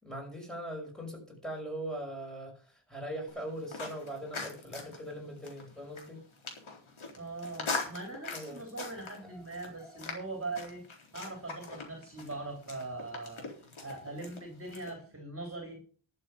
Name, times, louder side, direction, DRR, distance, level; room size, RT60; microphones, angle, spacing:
voice 1, 0.0-6.2 8.3-8.6, right 1 dB, ahead, 0 dB, 5.7 m, -40 dB
sound 1, 3.3-14.9, left 3 dB, 75° left, 4.0 m, -42 dB
voice 2, 7.1-10.8 11.1-13.5 13.8-15.8, right 2 dB, 25° right, 2 dB, 3.3 m, -41 dB
12.0 x 7.4 x 7.2 m, 0.42 s
wide cardioid pair, 140°, 48 cm